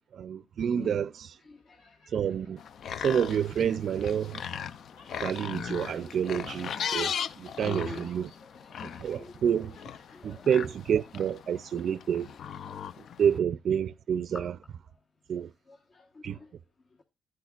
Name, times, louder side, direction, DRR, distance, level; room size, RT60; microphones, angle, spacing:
voice 1, 0.1-1.3 2.1-2.6 3.0-4.4 5.2-8.3 8.8-9.7 10.2-12.3 13.2-14.5 15.3-15.5 16.2-16.4, right 8 dB, 60° right, 0.4 m, -28 dB
voice 2, 0.7-1.1 1.4-2.0 5.9-6.2 7.6-8.1 8.4-9.4 9.7-9.8 10.1-10.5 13.1-13.2 15.7-16.5, left 4 dB, 40° left, 1.2 m, -45 dB
sound 1, 1.5-4.6 4.9-10.9, left 4 dB, 85° left, 3.6 m, -60 dB
sound 2, 2.6-13.4, left 8 dB, 60° left, 0.6 m, -38 dB
10.5 x 9.7 x 2.4 m
cardioid pair, 90°, 0 cm